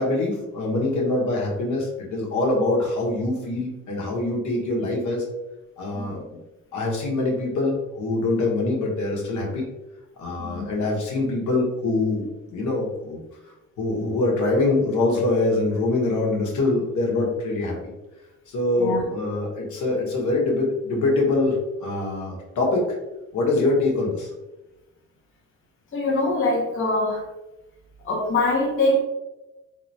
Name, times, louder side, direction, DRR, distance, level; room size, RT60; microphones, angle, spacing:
voice 1, 0.0-5.2 5.8-6.2 6.7-9.6 10.2-13.2 13.8-17.7 18.5-22.8 23.3-24.3, left 2 dB, 75° left, -2 dB, 1.3 m, -24 dB
voice 2, 10.4-10.7 13.9-14.1 18.8-19.0 25.9-27.3 28.0-29.0, left 2 dB, 45° left, -2 dB, 1.0 m, -23 dB
3.6 x 3.3 x 2.7 m, 1.0 s
cardioid pair, 90°, 30 cm